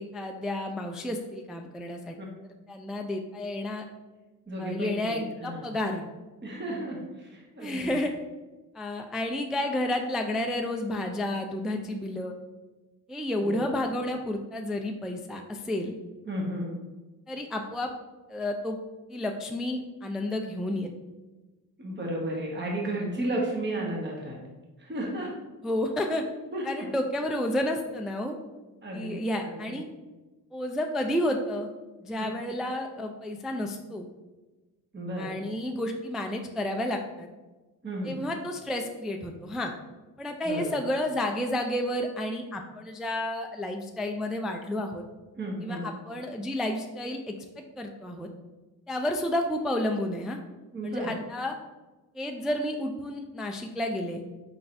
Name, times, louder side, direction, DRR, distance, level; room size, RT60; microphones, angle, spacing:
voice 1, 0.0-2.2 2.7-3.8 4.6-6.0 7.6-8.1 8.7-12.3 13.1-15.9 17.3-17.9 18.3-18.8 19.1-20.9 25.6-26.2 26.6-28.4 28.9-29.8 30.5-31.7 32.0-34.1 35.2-37.3 38.0-39.7 40.2-45.0 45.6-48.3 48.9-50.4 50.8-51.5 52.1-54.2, left 1 dB, ahead, 3 dB, 0.3 m, -31 dB
voice 2, 4.5-5.7 6.4-7.9 13.4-13.7 16.3-16.7 21.8-24.4 24.8-25.3 26.5-26.9 28.8-29.2 29.4-29.8 32.1-32.3 34.9-35.3 37.8-38.2 40.4-40.7 45.4-45.9 50.7-51.1, right 1 dB, 25° right, -2 dB, 1.3 m, -33 dB
4.5 x 3.8 x 2.6 m, 1.2 s
supercardioid pair, 60°, 43 cm